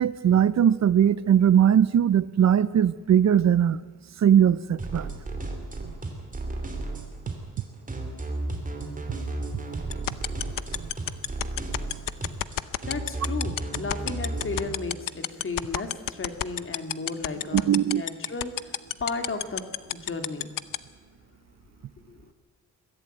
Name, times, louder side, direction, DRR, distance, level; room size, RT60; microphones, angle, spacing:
voice 1, 0.0-3.8 4.2-5.1 17.5-18.0, right 9 dB, 55° right, 17 dB, 0.6 m, -20 dB
sound 1, 4.8-14.7, right 2 dB, 25° right, 2.9 m, -33 dB
sound 2, 9.9-20.8, left 12 dB, 85° left, 0.8 m, -27 dB
voice 2, 12.8-19.6 19.9-20.5 22.1-22.2, left 3 dB, 40° left, 6 dB, 2.3 m, -34 dB
22.5 x 14.5 x 9.0 m, 1.4 s
wide cardioid pair, 155°, 32 cm